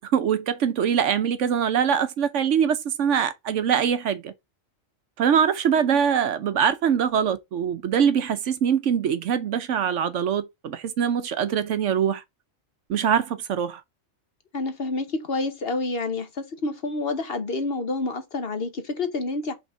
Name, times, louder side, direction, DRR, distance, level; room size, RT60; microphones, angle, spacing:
voice 1, 0.0-4.3 5.2-12.2 12.9-13.8, right 8 dB, 65° right, 1.0 m, -23 dB
voice 2, 14.5-19.5, left 3 dB, 50° left, 1.1 m, -28 dB
5.4 x 3.5 x 5.4 m
omnidirectional pair, 1.4 m